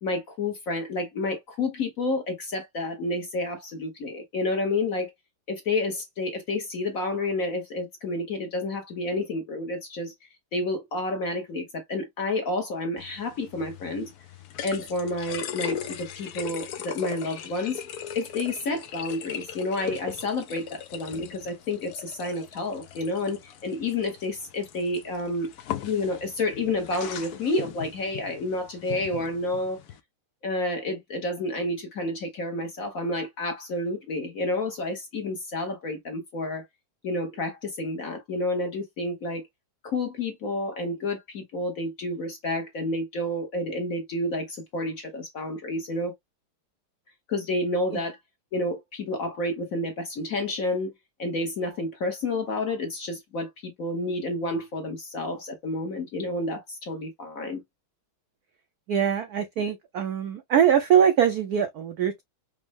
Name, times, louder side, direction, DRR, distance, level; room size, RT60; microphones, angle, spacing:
voice 1, 0.0-5.1 5.5-14.1 14.6-17.8 18.1-25.5 25.8-29.8 30.4-36.6 37.0-39.5 39.8-46.1 47.3-48.2 48.5-50.9 51.2-57.6, left 2 dB, 55° left, 1.0 m, -30 dB
sound 1, 13.0-30.0, left 9 dB, 75° left, 0.8 m, -39 dB
voice 2, 58.9-62.2, right 9 dB, 75° right, 0.8 m, -22 dB
5.2 x 2.0 x 3.3 m
omnidirectional pair, 2.3 m